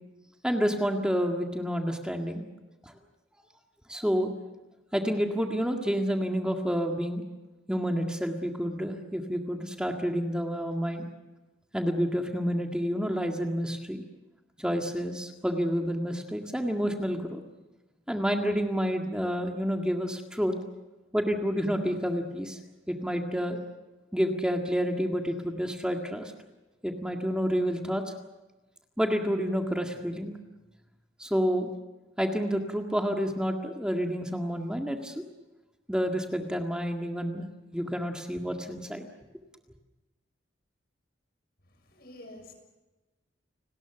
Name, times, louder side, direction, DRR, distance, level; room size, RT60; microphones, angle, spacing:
voice 1, 0.4-2.4 2.8-2.9 3.9-4.3 4.9-7.2 7.7-11.0 11.7-14.0 14.6-17.4 18.1-20.5 21.1-22.6 22.9-23.6 24.1-26.3 26.8-28.1 29.0-30.3 31.2-31.7 32.2-35.2 35.9-37.5 37.7-39.0, equal, 5° right, 3 dB, 1.9 m, -29 dB
voice 2, 41.8-42.5, left 1 dB, 55° left, 6 dB, 6.3 m, -48 dB
30.0 x 19.5 x 6.9 m, 1.1 s
head